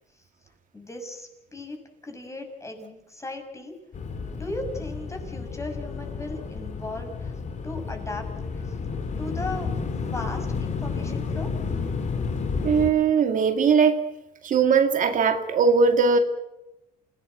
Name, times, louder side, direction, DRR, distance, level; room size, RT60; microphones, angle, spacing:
voice 1, 0.7-3.7 4.3-7.3 7.6-8.3 8.5-8.8 9.2-9.7 10.1-11.5, left 2 dB, 15° left, 4 dB, 6.4 m, -37 dB
sound 1, 3.9-12.9, left 4 dB, 45° left, 3.6 m, -31 dB
voice 2, 12.6-14.0 14.4-16.2, right 5 dB, 50° right, 6 dB, 2.0 m, -20 dB
28.5 x 17.5 x 7.8 m, 0.92 s
cardioid pair, 110°, 17 cm